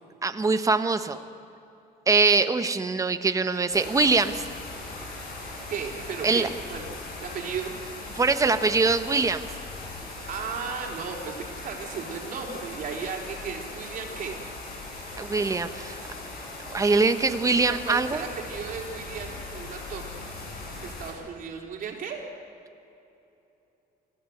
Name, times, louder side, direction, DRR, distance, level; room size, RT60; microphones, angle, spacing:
voice 1, 0.2-1.2 2.1-4.4 6.2-6.5 8.2-9.5 15.2-16.0 16.7-18.2, right 4 dB, 20° right, 9 dB, 1.1 m, -23 dB
sound 1, 3.7-21.1, left 2 dB, 60° left, 6.4 m, -39 dB
voice 2, 5.7-6.9 7.2-7.7 10.3-14.4 17.5-20.1 20.8-22.2, right 6 dB, 55° right, 0 dB, 4.2 m, -35 dB
23.5 x 15.5 x 8.0 m, 2.9 s
cardioid pair, 110°, 17 cm